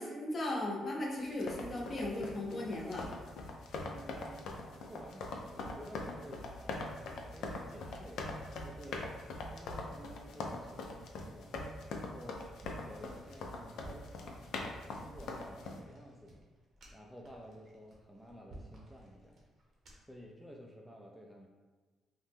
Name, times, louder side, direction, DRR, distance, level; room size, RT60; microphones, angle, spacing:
voice 1, 0.0-3.1, left 1 dB, 40° left, -2 dB, 0.7 m, -37 dB
sound 1, 1.2-15.8, left 3 dB, 75° left, 0.3 m, -42 dB
voice 2, 3.9-4.5 4.9-9.1 9.5-12.5 12.8-14.5 14.9-16.4 16.9-19.3 20.1-21.5, equal, ahead, -1 dB, 0.3 m, -53 dB
sound 2, 12.6-20.2, right 1 dB, 60° right, 0.8 m, -56 dB
2.7 x 2.1 x 3.4 m, 1.3 s
cardioid pair, 90°, 0 cm